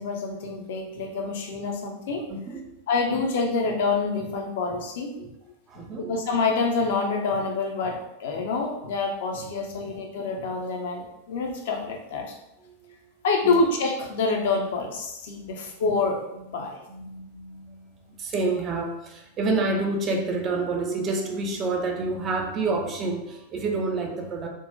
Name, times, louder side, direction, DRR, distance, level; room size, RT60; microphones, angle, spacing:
voice 1, 0.0-2.2 2.9-5.1 6.0-12.3 13.2-16.8, left 4 dB, 55° left, 1 dB, 0.6 m, -27 dB
voice 2, 2.2-2.8 5.2-5.3 5.7-6.1 9.4-10.0 12.6-13.0 13.4-13.5 15.3-15.5 16.4-16.6 16.9-24.5, right 3 dB, 30° right, 2 dB, 0.5 m, -29 dB
3.7 x 2.1 x 2.6 m, 0.86 s
figure-of-eight pair, 90°, 0 cm